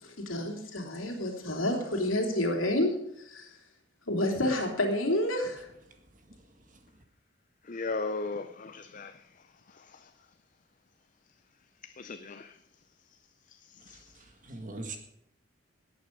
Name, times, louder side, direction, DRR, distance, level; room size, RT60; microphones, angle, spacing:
voice 1, 0.0-3.5 4.1-5.7, left 1 dB, 75° left, 3.1 m, -29 dB
voice 2, 7.6-9.3 9.7-10.1 11.8-12.6 13.5-14.1, left 3 dB, 40° left, 0.5 m, -38 dB
voice 3, 13.9-15.0, right 2 dB, 40° right, 1.7 m, -42 dB
17.5 x 8.9 x 5.3 m
head